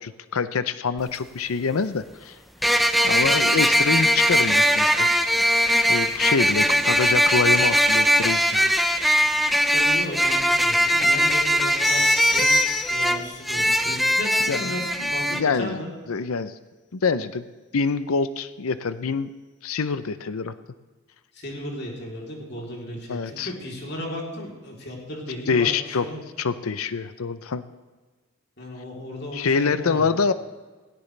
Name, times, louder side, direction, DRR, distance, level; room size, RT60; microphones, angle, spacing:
voice 1, 0.0-2.4 3.0-5.1 5.9-8.7 9.2-9.3 11.0-11.1 13.7-13.8 14.5-15.8 16.1-16.5 16.9-17.5 17.7-19.3 19.6-20.5 23.1-23.5 25.5-26.1 26.4-27.6 29.3-30.3, left 5 dB, 80° left, 13 dB, 0.6 m, -26 dB
sound 1, 1.0-1.1 2.6-15.4, equal, ahead, 0.5 m, -20 dB
voice 2, 9.7-12.0 12.3-15.9 21.3-26.2 28.6-30.1, left 1 dB, 50° left, -1 dB, 3.4 m, -35 dB
sound 2, 11.8-13.4, left 11 dB, 30° left, 1.7 m, -30 dB
17.5 x 17.5 x 3.3 m, 1.3 s
head